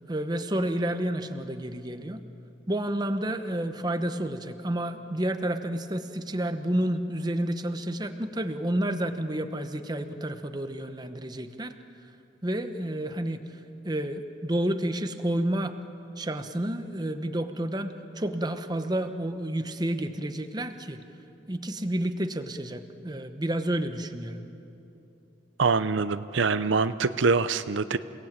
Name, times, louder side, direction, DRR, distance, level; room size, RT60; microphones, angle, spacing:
voice 1, 0.1-2.2 2.7-11.7 12.4-13.4 13.8-15.8 16.2-21.0 21.5-24.4, right 1 dB, 20° right, 8 dB, 1.0 m, -30 dB
voice 2, 25.6-28.0, right 4 dB, 80° right, 13 dB, 0.6 m, -24 dB
28.5 x 18.5 x 8.9 m, 2.9 s
head